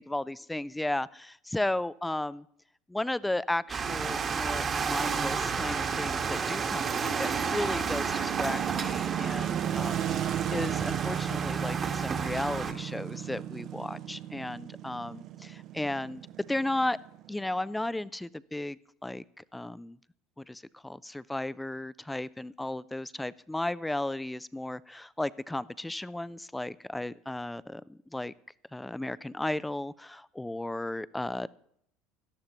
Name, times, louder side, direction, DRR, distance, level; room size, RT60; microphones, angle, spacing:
voice 1, 0.0-2.5 2.9-16.2 16.5-17.0 17.3-20.0 20.4-28.3 28.7-31.5, left 1 dB, 10° left, 19 dB, 0.4 m, -34 dB
sound 1, 3.7-12.7, right 5 dB, 35° right, 1.3 m, -32 dB
sound 2, 3.8-18.1, right 10 dB, 50° right, 0.6 m, -36 dB
17.5 x 12.5 x 3.0 m, 0.70 s
hypercardioid pair, 75°, 0 cm